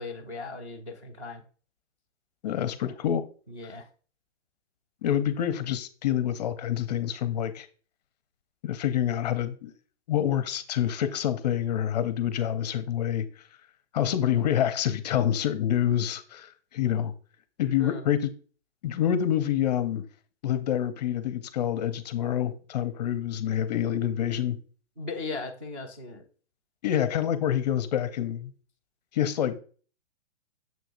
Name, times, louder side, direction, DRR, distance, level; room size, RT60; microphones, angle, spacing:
voice 1, 0.0-1.4 2.8-3.0 3.5-3.9 17.8-18.0 25.0-26.2, left 3 dB, 15° right, 0.4 m, -37 dB
voice 2, 2.4-3.2 5.0-7.7 8.6-9.7 10.1-13.3 13.9-17.1 17.6-18.3 18.8-20.1 20.4-24.6 26.8-28.5 29.1-29.6, left 10 dB, 35° left, 0.6 m, -27 dB
6.9 x 6.3 x 2.5 m
hypercardioid pair, 150°, 36 cm